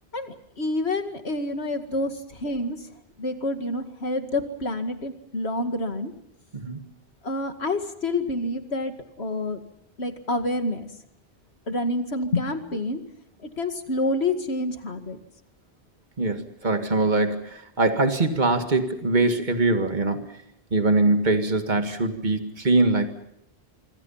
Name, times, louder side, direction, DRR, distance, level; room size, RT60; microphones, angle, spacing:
voice 1, 0.1-2.8 3.2-6.1 7.2-9.6 10.0-10.9 11.7-13.0 13.4-15.2, left 2 dB, 70° left, 7 dB, 2.4 m, -28 dB
voice 2, 16.2-20.2 20.7-23.1, right 2 dB, 45° right, 6 dB, 2.1 m, -22 dB
26.0 x 25.0 x 5.7 m, 0.77 s
omnidirectional pair, 1.1 m